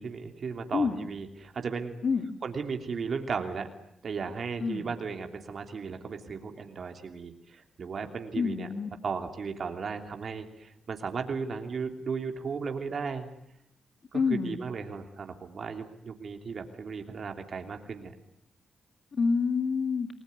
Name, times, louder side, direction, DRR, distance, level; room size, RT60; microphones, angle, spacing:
voice 1, 0.0-2.0 2.4-3.7 4.0-8.7 9.0-13.3 14.1-18.1, right 5 dB, 55° right, 5 dB, 3.1 m, -35 dB
voice 2, 0.7-1.1 2.0-2.4 4.6-5.0 8.3-8.9 14.1-14.6 19.1-20.1, left 5 dB, 55° left, 9 dB, 2.0 m, -28 dB
29.0 x 20.5 x 9.6 m, 0.79 s
cardioid pair, 95°, 0 cm